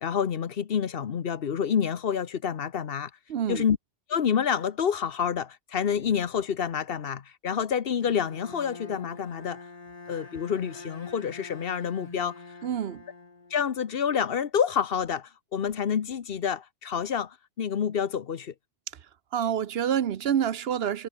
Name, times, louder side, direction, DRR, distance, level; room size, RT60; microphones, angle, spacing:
voice 1, 0.0-3.1 3.5-3.8 4.1-9.6 10.1-12.3 13.5-18.5, left 7 dB, 70° left, 1.1 m, -28 dB
voice 2, 3.3-3.6 12.6-13.0 19.3-21.1, right 9 dB, 75° right, 1.0 m, -27 dB
Bowed string instrument, 8.0-14.0, left 3 dB, 40° left, 1.6 m, -45 dB
omnidirectional pair, 1.0 m